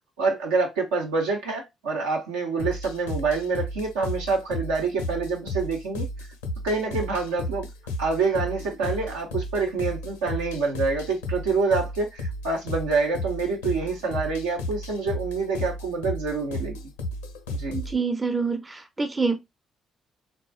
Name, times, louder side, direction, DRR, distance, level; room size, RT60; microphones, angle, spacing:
voice 1, 0.2-6.1 6.6-7.7 8.0-16.8 17.5-17.8, right 4 dB, 75° right, 0.9 m, -26 dB
sound 1, 2.6-18.0, left 1 dB, 75° left, 0.5 m, -33 dB
voice 2, 17.7-19.4, right 4 dB, 25° right, 0.6 m, -26 dB
3.6 x 2.3 x 2.4 m
figure-of-eight pair, 40°, 0 cm